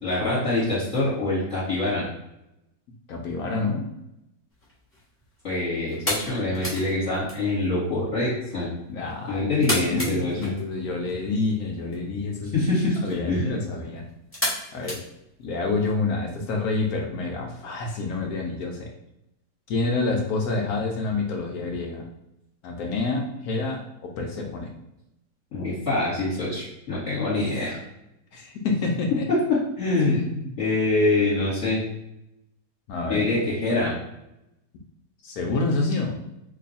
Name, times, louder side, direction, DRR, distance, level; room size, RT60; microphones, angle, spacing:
voice 1, 0.0-2.0 5.4-8.7 9.3-10.5 12.5-13.0 13.3-13.5 25.5-27.8 29.3-30.2 30.6-31.8 33.1-33.9, left 2 dB, 45° left, -11 dB, 1.4 m, -24 dB
voice 2, 3.1-3.9 8.9-12.6 13.0-14.1 14.7-15.0 15.4-18.9 19.7-22.1 22.6-24.7 28.3-29.3 30.0-30.5 32.9-33.2 35.2-36.2, left 3 dB, 70° left, 1 dB, 0.9 m, -28 dB
sound 1, 4.5-15.9, left 1 dB, 10° left, 0.6 m, -35 dB
3.1 x 2.2 x 4.0 m, 0.86 s
omnidirectional pair, 2.0 m